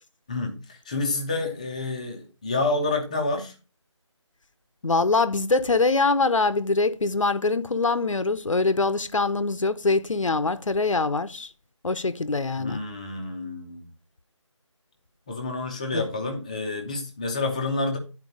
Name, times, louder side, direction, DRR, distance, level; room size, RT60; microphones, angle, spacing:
voice 1, 0.3-3.5 12.6-13.9 15.3-18.0, left 3 dB, 15° left, 0.7 m, -29 dB
voice 2, 4.8-11.5 11.8-12.8 15.9-16.0, left 3 dB, 80° left, 0.8 m, -23 dB
9.7 x 4.4 x 5.2 m
figure-of-eight pair, 165°, 16 cm